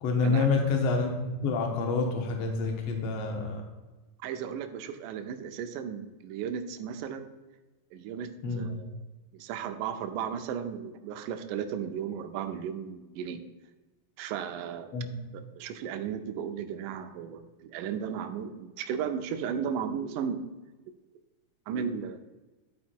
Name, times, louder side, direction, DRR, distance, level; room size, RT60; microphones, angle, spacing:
voice 1, 0.0-3.6 8.4-8.7 14.9-15.0, left 4 dB, 60° left, 3 dB, 1.8 m, -27 dB
voice 2, 4.2-7.3 7.9-9.0 9.3-13.4 14.2-14.9 15.3-20.4 21.7-22.2, right 7 dB, 80° right, 8 dB, 2.1 m, -35 dB
11.5 x 4.5 x 4.4 m, 1.2 s
omnidirectional pair, 3.9 m